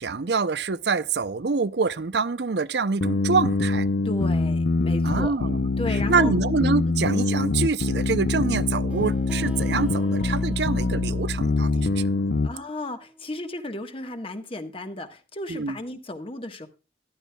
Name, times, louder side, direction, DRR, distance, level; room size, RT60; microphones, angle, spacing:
voice 1, 0.0-3.9 5.0-5.6 6.1-12.1 15.5-15.8, right 4 dB, 65° right, 0.6 m, -25 dB
sound 1, 3.0-12.5, left 3 dB, 70° left, 0.7 m, -24 dB
voice 2, 4.0-5.4 5.8-6.4 12.4-16.7, left 1 dB, 30° left, 1.4 m, -34 dB
sound 2, 8.9-14.3, equal, 5° right, 1.1 m, -47 dB
14.5 x 12.0 x 2.3 m
head